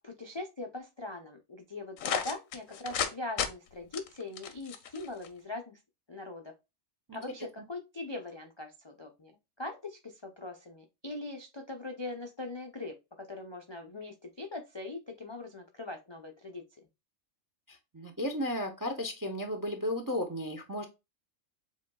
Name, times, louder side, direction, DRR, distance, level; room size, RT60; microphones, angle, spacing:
voice 1, 0.0-5.8 6.1-6.5 7.1-9.3 9.6-16.6, left 2 dB, 40° left, 3 dB, 0.4 m, -41 dB
sound 1, 2.0-3.1 3.4-3.5 3.9-5.3, left 8 dB, 85° left, 1.1 m, -33 dB
voice 2, 17.7-20.8, left 1 dB, 25° right, 4 dB, 0.5 m, -34 dB
7.4 x 2.9 x 2.2 m, 0.25 s
omnidirectional pair, 1.3 m